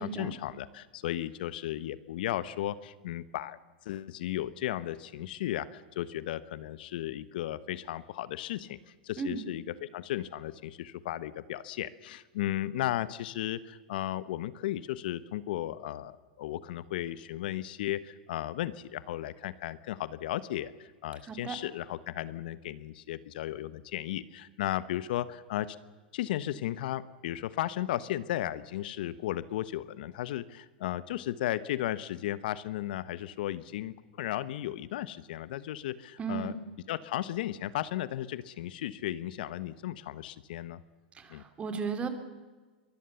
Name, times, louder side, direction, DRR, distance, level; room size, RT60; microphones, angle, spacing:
voice 1, 0.0-25.8 26.1-36.5 36.9-40.8 41.3-41.4, left 13 dB, 65° left, 16 dB, 1.0 m, -35 dB
voice 2, 36.2-36.6 41.1-42.1, right 5 dB, 20° right, 8 dB, 3.3 m, -35 dB
23.5 x 19.5 x 7.0 m, 1.3 s
hypercardioid pair, 110°, 5 cm